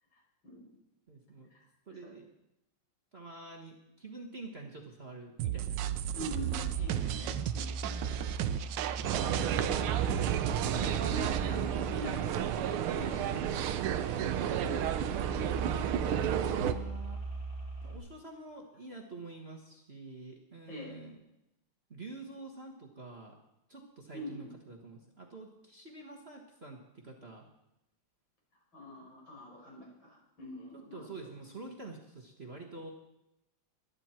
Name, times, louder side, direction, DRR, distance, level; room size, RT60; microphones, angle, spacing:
voice 1, 0.1-0.8 1.5-2.1 6.1-8.1 8.3-8.5 10.7-13.7 14.1-15.4 20.7-20.9 24.1-24.5 28.7-31.1, left 1 dB, 60° left, -3 dB, 6.2 m, -46 dB
voice 2, 1.1-1.5 1.9-2.3 3.1-5.8 6.1-6.5 8.0-8.3 12.1-12.2 16.1-17.2 17.8-21.2 21.9-23.3 23.7-27.5 30.7-32.9, right 3 dB, 30° right, 0 dB, 1.7 m, -47 dB
sound 1, 5.4-11.4, right 12 dB, 70° right, 1.2 m, -35 dB
sound 2, 6.5-18.0, right 2 dB, 40° left, 7.7 m, -40 dB
sound 3, 9.0-16.7, right 10 dB, 85° right, 1.7 m, -31 dB
23.0 x 10.0 x 4.5 m, 0.87 s
omnidirectional pair, 2.3 m